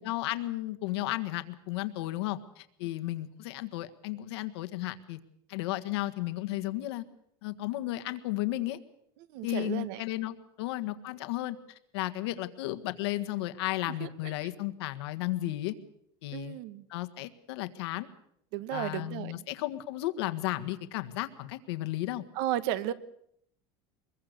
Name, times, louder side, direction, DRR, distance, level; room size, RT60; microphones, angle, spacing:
voice 1, 0.0-5.2 5.5-7.0 7.4-8.8 9.4-11.6 11.9-15.7 16.2-16.6 16.9-18.1 18.7-22.2, left 16 dB, 85° left, 9 dB, 1.6 m, -34 dB
voice 2, 9.3-10.0 14.0-14.3 16.3-16.8 18.5-19.5 22.3-22.9, right 13 dB, 65° right, 15 dB, 1.2 m, -34 dB
23.5 x 22.0 x 6.7 m, 0.71 s
cardioid pair, 160°, 13 cm